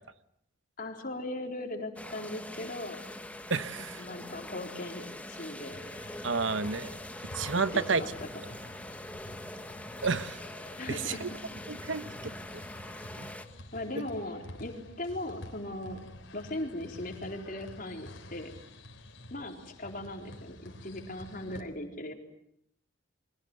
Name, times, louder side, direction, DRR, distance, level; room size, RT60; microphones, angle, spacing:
voice 1, 0.8-3.0 4.0-5.8 7.7-8.3 10.8-11.4 13.7-16.0 16.3-18.5 19.3-22.1, left 1 dB, 45° left, 3 dB, 4.1 m, -38 dB
sound 1, 2.0-13.5, left 1 dB, 5° left, 1.5 m, -43 dB
voice 2, 3.5-4.0 6.2-7.0 7.3-8.0 10.0-10.4 11.2-11.3 11.7-12.6 13.2-13.3, right 4 dB, 70° right, 13 dB, 1.1 m, -31 dB
sound 2, 5.7-21.6, left 1 dB, 70° left, 3.6 m, -49 dB
29.0 x 24.0 x 7.9 m, 0.75 s
head